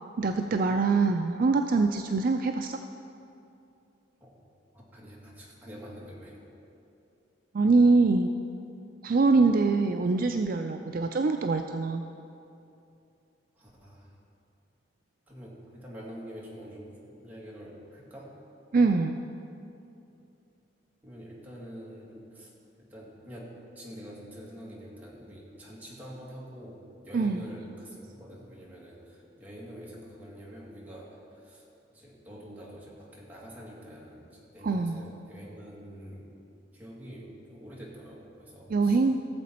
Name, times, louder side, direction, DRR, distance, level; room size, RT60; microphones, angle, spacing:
voice 1, 0.2-2.8 7.5-8.3 9.0-12.0 18.7-19.2 27.1-27.4 34.6-35.0 38.7-39.2, right 3 dB, 50° right, 5 dB, 0.4 m, -24 dB
voice 2, 4.7-6.4 13.6-14.2 15.3-18.4 21.0-31.7 31.9-36.3 36.7-39.2, equal, 10° right, -5 dB, 2.1 m, -46 dB
17.0 x 7.3 x 4.3 m, 2.7 s
head